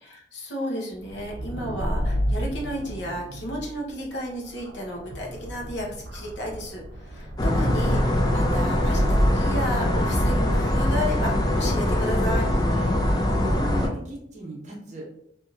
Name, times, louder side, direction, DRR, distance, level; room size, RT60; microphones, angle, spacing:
voice 1, 0.0-12.5, equal, 75° left, -2 dB, 0.8 m, -33 dB
sound 1, 1.0-13.6, equal, 70° right, 0.5 m, -31 dB
sound 2, 7.4-13.9, left 1 dB, 20° left, 0.4 m, -23 dB
voice 2, 13.4-15.1, right 1 dB, 40° right, -2 dB, 0.9 m, -36 dB
2.9 x 2.6 x 2.4 m, 0.70 s
head